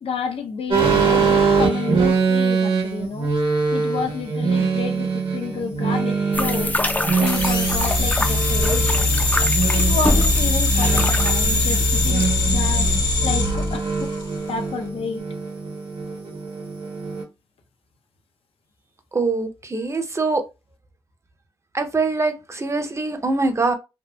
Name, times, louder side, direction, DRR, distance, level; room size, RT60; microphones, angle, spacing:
voice 1, 0.0-3.3 3.7-6.8 7.2-9.2 9.7-12.9 13.2-14.1 14.5-15.2, left 5 dB, 75° left, 0.6 m, -30 dB
sound 1, 0.7-17.2, right 5 dB, 60° right, 0.9 m, -24 dB
sound 2, 6.3-13.3, left 2 dB, 15° left, 0.4 m, -25 dB
sound 3, 7.3-14.4, left 2 dB, 50° left, 0.9 m, -21 dB
voice 2, 19.1-20.4 21.7-23.7, right 3 dB, 30° right, 0.6 m, -23 dB
2.7 x 2.5 x 2.2 m
cardioid pair, 70°, 10 cm